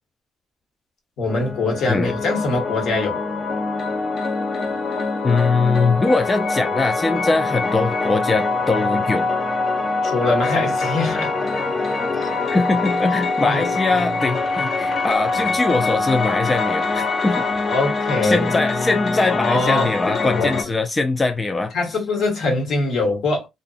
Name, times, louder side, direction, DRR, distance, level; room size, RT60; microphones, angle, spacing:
voice 1, 1.2-3.2 10.0-11.3 13.4-13.7 17.7-18.5 19.3-19.9 20.4-20.5 21.7-23.5, left 3 dB, 75° left, 1.3 m, -22 dB
sound 1, 1.3-20.6, left 3 dB, 50° left, 0.8 m, -24 dB
voice 2, 5.2-9.3 12.2-17.5 18.2-22.0, left 3 dB, 25° left, 0.3 m, -22 dB
2.6 x 2.4 x 2.3 m
cardioid pair, 90°, 0 cm